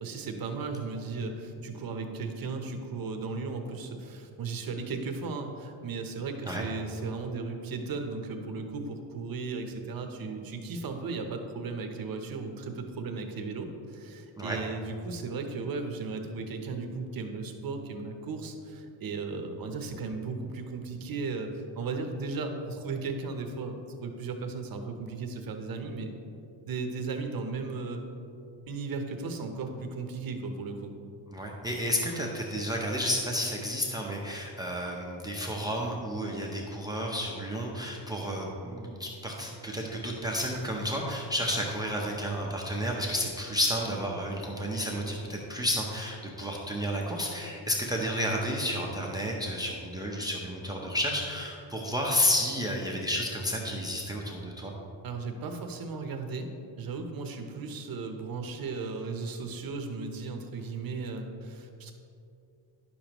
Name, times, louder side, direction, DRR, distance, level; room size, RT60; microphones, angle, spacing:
voice 1, 0.0-23.8 24.0-26.1 26.7-28.0 28.7-30.9 55.0-56.5 56.8-61.9, right 4 dB, 50° right, 5 dB, 0.8 m, -36 dB
voice 2, 31.3-54.7, equal, 10° right, -1 dB, 0.6 m, -31 dB
10.0 x 6.8 x 3.0 m, 2.6 s
cardioid pair, 150°, 47 cm